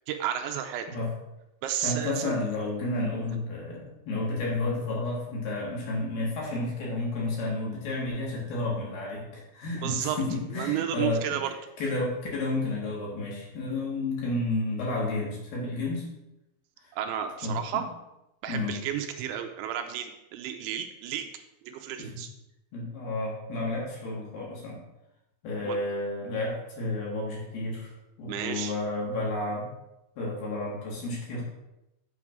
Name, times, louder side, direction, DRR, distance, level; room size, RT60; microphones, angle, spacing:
voice 1, 0.1-0.9 1.6-2.4 9.7-10.2 10.5-11.5 16.9-17.9 18.4-21.3 21.6-22.3 25.6-25.8 28.3-28.7, right 10 dB, 80° right, 5 dB, 2.9 m, -32 dB
voice 2, 1.8-11.2 11.8-16.1 17.4-17.8 18.5-18.8 22.0-22.1 22.7-24.8 25.4-29.7 30.2-31.4, left 2 dB, 60° left, -4 dB, 3.5 m, -31 dB
8.7 x 4.9 x 6.1 m, 0.90 s
omnidirectional pair, 5.5 m